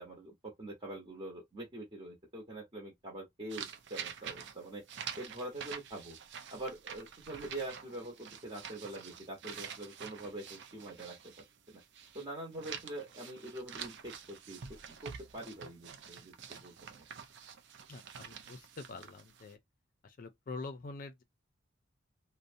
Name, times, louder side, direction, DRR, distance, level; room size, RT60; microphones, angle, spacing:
voice 1, 0.0-4.8 5.2-6.2 6.5-11.4 12.1-14.6 15.0-17.0, right 1 dB, 30° right, 0.9 m, -44 dB
sound 1, 3.5-12.3 12.5-19.5, right 7 dB, 60° right, 0.5 m, -47 dB
voice 2, 17.9-19.6 20.0-21.2, left 3 dB, 45° left, 0.4 m, -45 dB
2.6 x 2.1 x 2.6 m
head